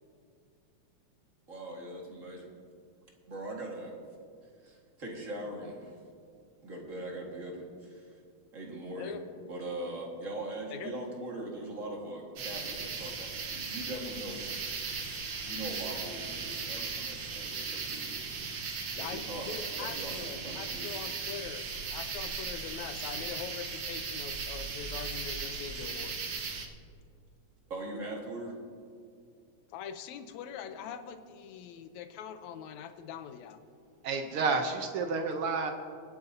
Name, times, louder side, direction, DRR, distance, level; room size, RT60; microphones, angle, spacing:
voice 1, 1.5-2.5 3.3-4.0 4.6-5.9 6.6-8.1 8.5-9.1 9.5-14.4 15.4-18.3 18.9-19.5 19.8-20.9 27.7-28.5 34.3-34.5, right 1 dB, 35° right, -1 dB, 1.5 m, -41 dB
sound 1, 12.4-26.7, right 5 dB, 60° right, 1.2 m, -37 dB
voice 2, 19.0-26.2 29.7-33.6, left 8 dB, 80° left, 8 dB, 2.0 m, -43 dB
voice 3, 34.0-35.7, right 4 dB, 75° right, 5 dB, 1.3 m, -30 dB
27.5 x 9.6 x 2.7 m, 2.3 s
omnidirectional pair, 3.3 m